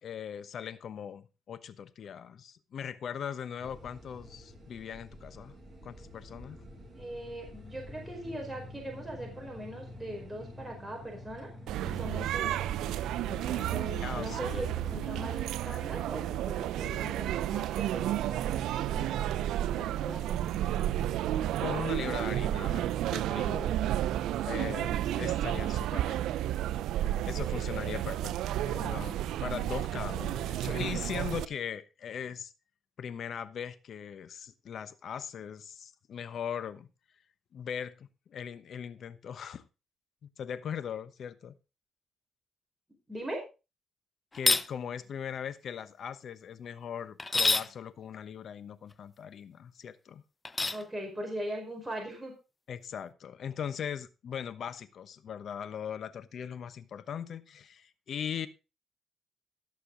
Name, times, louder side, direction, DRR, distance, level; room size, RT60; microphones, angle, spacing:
voice 1, 0.0-5.5 5.8-6.6 14.0-14.7 21.6-23.9 24.4-26.5 27.3-28.4 28.7-32.5 33.0-36.9 37.5-39.6 40.2-41.6 44.3-50.2 52.7-58.5, left 8 dB, 60° left, 1.0 m, -39 dB
sound 1, 3.6-15.3, left 1 dB, 30° right, 7.1 m, -47 dB
voice 2, 6.9-11.5 11.8-12.7 13.3-20.3 27.9-28.0 43.1-43.4 50.6-52.3, right 1 dB, 10° right, 4.9 m, -41 dB
sound 2, 11.7-31.4, right 12 dB, 85° right, 0.5 m, -32 dB
sound 3, 44.3-44.7 47.2-47.7 50.4-50.8, left 3 dB, 25° left, 0.6 m, -26 dB
17.0 x 6.8 x 3.9 m
cardioid pair, 90°, 0 cm